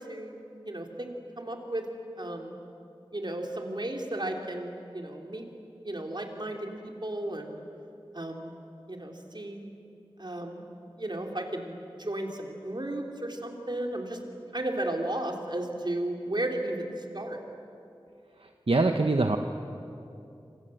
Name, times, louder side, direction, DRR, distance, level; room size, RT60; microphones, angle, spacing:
voice 1, 0.1-1.1 1.4-1.9 2.2-2.6 3.1-5.4 5.8-7.6 8.1-8.6 8.9-9.7 10.2-10.7 11.0-14.2 14.5-16.9 17.1-17.4, right 1 dB, 50° right, 2 dB, 3.6 m, -34 dB
voice 2, 18.7-19.4, right 3 dB, 75° right, 5 dB, 1.1 m, -23 dB
27.0 x 26.5 x 7.9 m, 2.7 s
wide cardioid pair, 45°, 10 cm